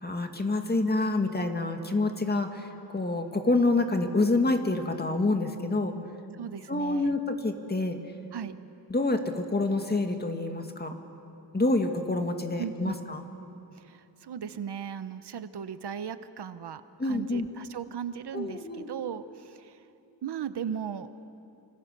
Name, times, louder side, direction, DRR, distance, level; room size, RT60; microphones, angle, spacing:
voice 1, 0.0-6.0 6.7-8.0 8.9-11.0 11.5-13.2 17.0-17.5 18.3-18.9, left 2 dB, 25° left, 5 dB, 2.1 m, -27 dB
voice 2, 6.3-7.2 8.3-8.5 12.6-13.0 13.7-19.8 20.2-21.1, right 8 dB, 70° right, 12 dB, 1.0 m, -37 dB
29.5 x 26.0 x 6.8 m, 2.9 s
wide cardioid pair, 105°, 42 cm